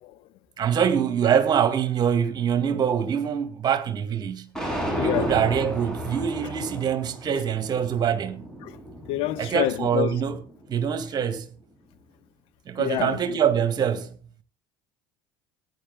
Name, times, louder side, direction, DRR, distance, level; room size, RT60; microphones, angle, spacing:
voice 1, 0.6-4.5 5.0-8.5 9.4-10.4 10.7-11.5 12.7-14.2, right 8 dB, 40° right, 1.9 m, -24 dB
sound 1, 4.5-10.7, equal, 5° left, 7.2 m, -34 dB
voice 2, 5.0-5.3 8.6-8.8 9.1-10.2 12.8-13.4, left 15 dB, 55° left, 1.1 m, -28 dB
19.5 x 10.0 x 2.2 m
figure-of-eight pair, 65°, 11 cm